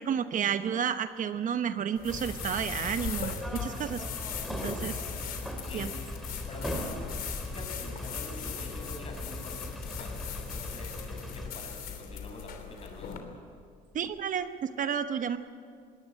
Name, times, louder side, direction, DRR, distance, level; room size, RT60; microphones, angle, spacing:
voice 1, 0.0-4.0 4.5-5.0 5.7-5.9 13.9-15.4, right 8 dB, 50° right, 10 dB, 1.0 m, -31 dB
sound 1, 2.0-13.2, left 8 dB, 60° left, 3.3 m, -40 dB
sound 2, 2.1-11.5, left 1 dB, ahead, 2.9 m, -39 dB
voice 2, 5.6-6.0 6.5-7.0 7.5-13.6, left 2 dB, 35° left, 2 dB, 6.3 m, -45 dB
21.0 x 18.0 x 9.2 m, 2.1 s
cardioid pair, 110°, 17 cm